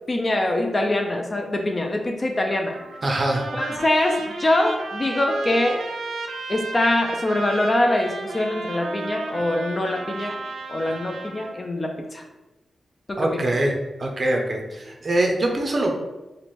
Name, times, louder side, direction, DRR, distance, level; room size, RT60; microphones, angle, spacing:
voice 1, 0.1-2.7 3.5-5.8 6.5-10.4 10.7-12.2 13.1-13.4, left 1 dB, 25° left, 3 dB, 0.3 m, -23 dB
Trumpet, 2.7-11.7, right 3 dB, 90° right, 0.5 m, -33 dB
voice 2, 3.0-3.4 13.2-13.7 14.0-15.9, right 1 dB, 35° right, 1 dB, 0.5 m, -23 dB
3.1 x 2.6 x 4.1 m, 1.0 s
wide cardioid pair, 175°, 0 cm